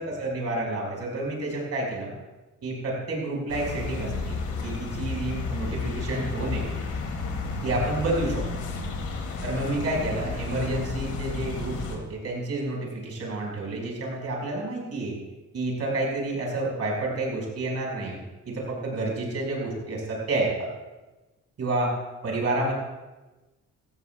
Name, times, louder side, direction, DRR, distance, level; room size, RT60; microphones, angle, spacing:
voice 1, 0.0-2.1 2.6-4.4 4.6-6.6 7.6-8.4 9.4-15.1 15.5-18.2 18.4-20.7 21.6-21.9 22.2-22.7, right 2 dB, 55° right, -1 dB, 5.1 m, -29 dB
sound 1, 3.5-12.0, left 4 dB, 75° left, 2.5 m, -32 dB
17.0 x 15.0 x 2.3 m, 1.1 s
cardioid pair, 90°, 30 cm